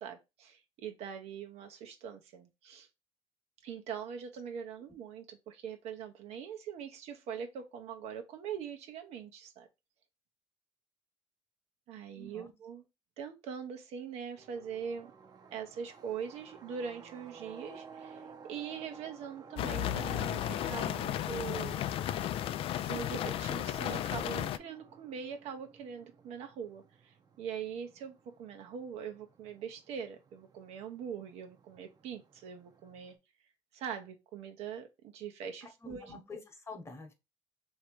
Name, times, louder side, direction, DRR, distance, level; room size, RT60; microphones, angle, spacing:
voice 1, 0.0-2.9 3.6-9.7 11.9-12.8 13.2-15.1 15.5-18.2 18.5-21.8 22.9-33.2 33.7-36.2, right 7 dB, 70° right, 0.9 m, -42 dB
voice 2, 12.1-12.5 35.8-37.1, left 3 dB, 25° left, 1.2 m, -47 dB
sound 1, 14.4-33.1, right 5 dB, 35° right, 0.8 m, -55 dB
sound 2, 19.6-24.6, left 11 dB, 55° left, 0.4 m, -34 dB
3.2 x 2.8 x 4.6 m
cardioid pair, 95°, 11 cm